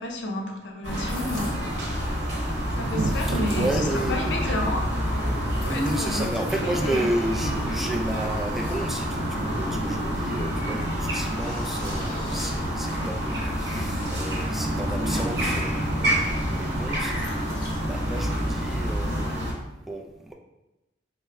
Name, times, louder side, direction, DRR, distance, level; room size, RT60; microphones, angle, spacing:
voice 1, 0.0-2.1 2.7-4.9 5.6-7.1, left 1 dB, 70° left, 1 dB, 0.5 m, -32 dB
sound 1, 0.8-19.5, equal, 65° right, 0.9 m, -28 dB
sound 2, 1.0-1.8 3.1-4.1 5.1-6.9 7.6-9.5 10.9-15.8 16.7-18.4, left 1 dB, 25° left, 0.8 m, -43 dB
Thunder / Rain, 2.6-18.9, right 2 dB, 85° right, 0.3 m, -39 dB
voice 2, 3.1-4.8 5.5-17.3 17.9-20.3, right 1 dB, ahead, 0 dB, 0.3 m, -32 dB
3.3 x 2.1 x 3.3 m, 1.0 s
head